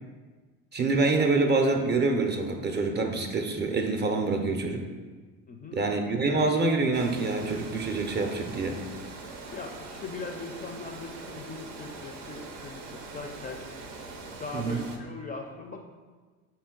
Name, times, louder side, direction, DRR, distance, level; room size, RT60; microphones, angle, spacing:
voice 1, 0.7-4.9 5.7-8.8 14.5-14.8, right 3 dB, 30° right, 3 dB, 0.5 m, -26 dB
voice 2, 5.5-5.8 9.5-13.7 14.4-15.8, left 3 dB, 25° left, 2 dB, 0.4 m, -40 dB
Water, 6.9-15.0, right 3 dB, 75° right, 0.6 m, -42 dB
5.4 x 2.2 x 3.7 m, 1.4 s
hypercardioid pair, 60°, 37 cm